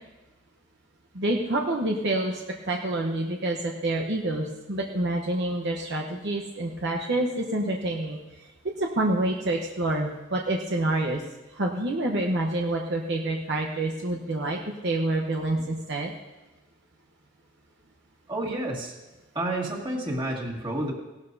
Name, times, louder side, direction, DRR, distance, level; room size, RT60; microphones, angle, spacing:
voice 1, 1.1-8.2 8.8-11.2 11.5-16.1, right 1 dB, 60° right, 0 dB, 1.0 m, -27 dB
voice 2, 18.3-18.9 19.3-20.9, right 1 dB, 25° right, -2 dB, 2.1 m, -30 dB
17.5 x 12.5 x 2.7 m, 1.1 s
head